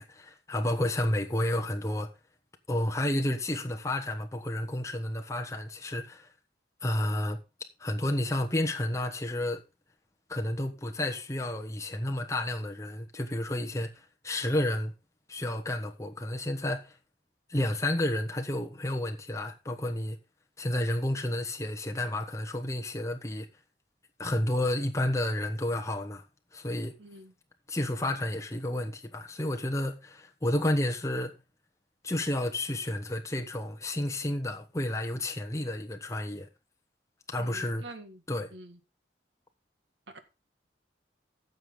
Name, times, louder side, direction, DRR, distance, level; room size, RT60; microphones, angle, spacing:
voice 1, 0.0-2.1 2.7-6.3 6.8-7.4 7.8-9.6 10.3-14.9 15.3-17.0 17.5-20.2 20.6-23.5 24.2-26.2 26.5-27.0 27.7-31.4 32.0-36.5 37.3-37.8 38.3-38.5, left 1 dB, 15° left, 1.2 m, -31 dB
voice 2, 27.0-27.3 37.3-38.2 38.5-38.8 40.1-40.2, right 1 dB, 85° right, 1.9 m, -46 dB
15.0 x 6.5 x 3.8 m
head